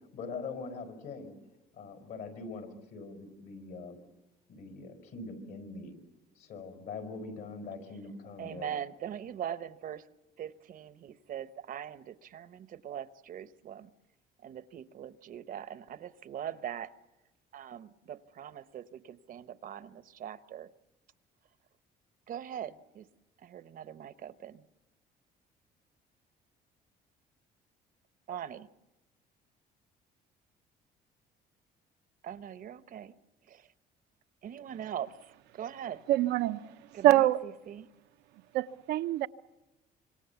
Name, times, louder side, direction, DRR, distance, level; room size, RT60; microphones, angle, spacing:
voice 1, 0.1-1.3 1.7-4.0 4.5-6.0 6.4-8.7, left 4 dB, 70° left, 5.0 m, -42 dB
voice 2, 8.4-10.1 10.4-13.9 14.4-16.9 17.5-20.7 22.3-23.1 23.4-24.7 28.3-28.7 32.2-33.1 33.4-33.7 34.4-36.0 36.9-37.9, right 9 dB, 55° right, 0.9 m, -42 dB
voice 3, 36.1-36.7 37.0-37.4 38.5-39.3, right 14 dB, 85° right, 0.8 m, -24 dB
26.0 x 24.5 x 7.0 m
cardioid pair, 110°, 17 cm